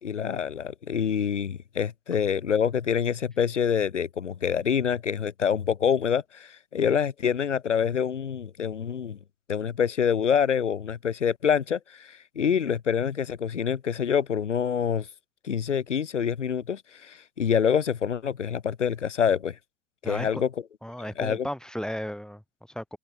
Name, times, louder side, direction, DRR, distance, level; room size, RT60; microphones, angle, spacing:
voice 1, 0.0-9.2 9.5-15.1 15.4-19.6 20.0-20.5 21.2-21.4, left 7 dB, 80° left, 3.1 m, -26 dB
voice 2, 20.0-20.4 20.8-23.0, equal, ahead, 5.2 m, -35 dB
open air
figure-of-eight pair, 65°, 36 cm